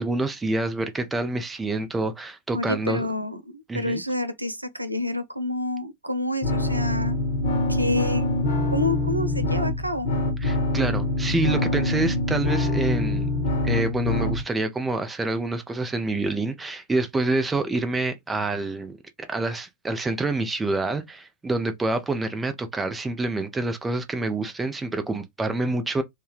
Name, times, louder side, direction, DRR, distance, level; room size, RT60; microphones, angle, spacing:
voice 1, 0.0-3.1 3.7-4.0 10.4-13.3 13.6-26.0, right 2 dB, 10° right, 0.5 m, -27 dB
voice 2, 2.5-7.2 7.7-8.3 8.7-10.1, left 2 dB, 85° right, 0.4 m, -28 dB
sound 1, 6.4-14.4, left 1 dB, 65° left, 1.1 m, -24 dB
3.3 x 2.2 x 3.1 m
figure-of-eight pair, 90°, 0 cm